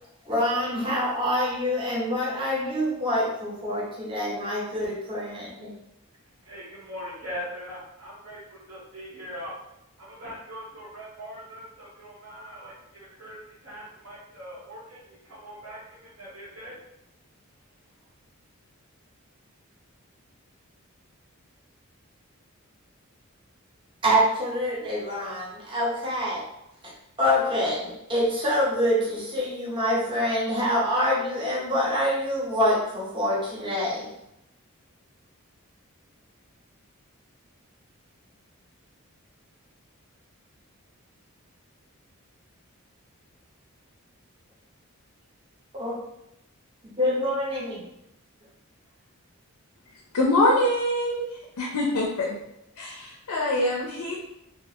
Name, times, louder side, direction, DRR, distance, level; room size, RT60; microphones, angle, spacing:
voice 1, 0.2-5.8 24.0-26.4 27.2-34.1 45.7-46.0 46.8-47.8, equal, 20° right, 0.5 m, -26 dB
voice 2, 6.5-9.5 10.0-16.8, equal, 65° right, 0.6 m, -41 dB
voice 3, 50.1-51.3 51.6-52.4 52.8-54.1, left 1 dB, 85° left, 0.4 m, -24 dB
2.3 x 2.3 x 2.6 m
head